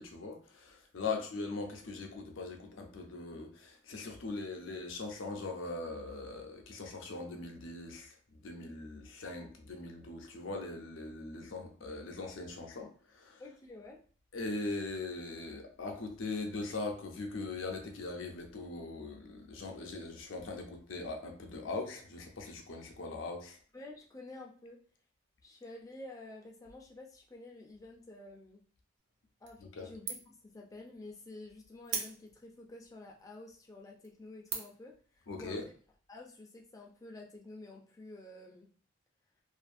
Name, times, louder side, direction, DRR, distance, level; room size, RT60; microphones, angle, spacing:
voice 1, 0.0-8.1 8.4-12.9 13.2-13.4 14.3-23.6 29.8-29.9 35.3-35.6, left 3 dB, 70° left, 2 dB, 0.6 m, -40 dB
voice 2, 13.4-14.0 23.7-24.8 25.4-28.6 29.4-35.7 36.1-38.7, left 2 dB, 15° left, -1 dB, 0.4 m, -50 dB
sound 1, 29.5-29.8 30.1-30.5 30.9-31.0 31.8-32.6 33.2-33.3 33.8-34.1 34.5-34.9, right 5 dB, 65° right, 0.6 m, -39 dB
2.5 x 2.5 x 2.5 m, 0.44 s
head